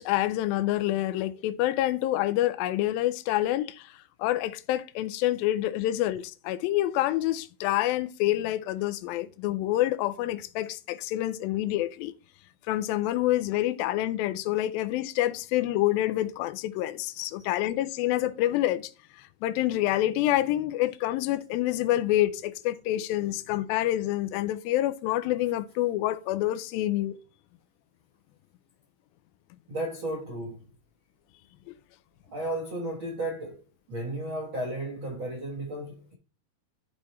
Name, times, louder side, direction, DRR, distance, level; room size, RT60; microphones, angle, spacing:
voice 1, 0.0-3.9 4.2-12.1 12.7-18.9 19.2-27.2, left 14 dB, 85° left, 2.1 m, -27 dB
voice 2, 29.7-30.6 32.3-33.6 33.9-36.1, right 1 dB, 65° right, 1.2 m, -34 dB
12.5 x 4.3 x 3.1 m
omnidirectional pair, 4.7 m